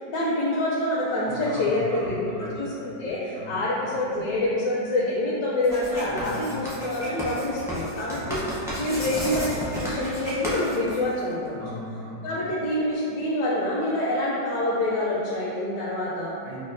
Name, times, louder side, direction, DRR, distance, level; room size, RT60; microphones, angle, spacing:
voice 1, 0.0-8.4 8.8-11.5 12.2-16.3, left 1 dB, 80° left, -6 dB, 1.2 m, -26 dB
voice 2, 1.2-2.6 3.3-3.6 6.0-6.7 8.1-8.3 11.5-12.3 16.4-16.6, left 1 dB, 70° right, -5 dB, 1.3 m, -38 dB
Writing, 5.6-11.5, equal, 5° right, 0.5 m, -32 dB
6.0 x 2.1 x 2.5 m, 2.5 s
omnidirectional pair, 1.8 m